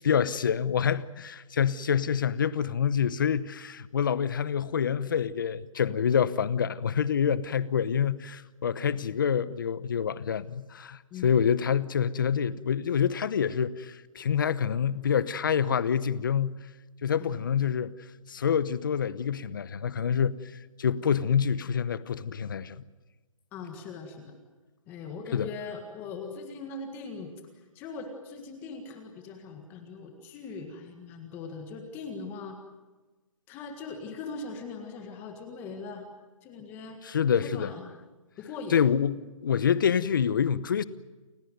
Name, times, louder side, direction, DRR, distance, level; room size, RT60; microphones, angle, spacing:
voice 1, 0.0-16.7 17.0-17.9 18.3-20.4 20.8-22.8 25.3-25.5 37.0-37.7 38.7-39.2 39.4-40.8, left 7 dB, 40° left, 1.0 m, -27 dB
voice 2, 23.5-24.3 24.9-27.3 27.8-32.6 33.5-36.0 36.4-37.0 37.4-37.8 38.4-38.8, left 4 dB, 10° left, 1.7 m, -40 dB
29.0 x 17.0 x 9.4 m
hypercardioid pair, 175°, 17 cm